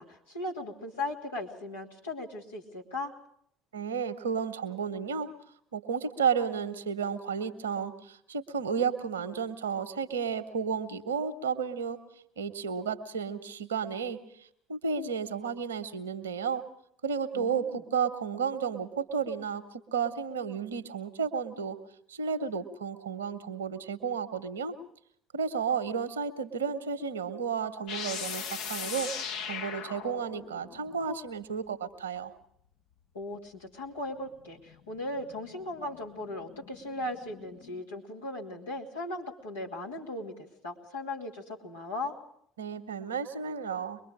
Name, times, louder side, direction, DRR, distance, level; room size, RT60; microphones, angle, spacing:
voice 1, 0.0-3.1 17.3-17.8 33.1-40.3 40.6-42.1, left 2 dB, 80° left, -3 dB, 2.8 m, -37 dB
voice 2, 3.7-5.3 5.7-12.0 12.4-14.2 14.7-16.6 17.0-21.8 22.1-24.7 25.3-29.1 29.5-32.3 42.6-44.0, right 6 dB, 80° right, 10 dB, 1.1 m, -32 dB
sound 1, 27.9-31.3 34.0-37.8, left 7 dB, 60° left, 1.1 m, -40 dB
24.0 x 21.5 x 5.0 m, 0.68 s
figure-of-eight pair, 60°, 0 cm